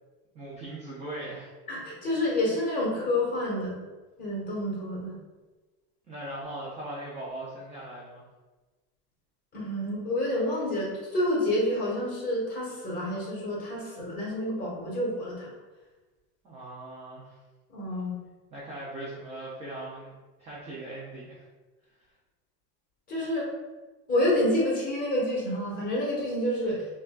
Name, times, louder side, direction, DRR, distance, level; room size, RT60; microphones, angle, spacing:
voice 1, 0.3-1.5 6.1-8.2 16.4-17.4 18.5-20.1 20.4-21.4, right 1 dB, 15° right, -6 dB, 0.4 m, -39 dB
voice 2, 1.7-3.8 4.2-5.1 9.5-15.5 17.7-18.2 23.1-23.5 24.1-26.9, left 1 dB, 20° left, -5 dB, 1.4 m, -28 dB
5.5 x 2.3 x 2.4 m, 1.2 s
supercardioid pair, 140°, 46 cm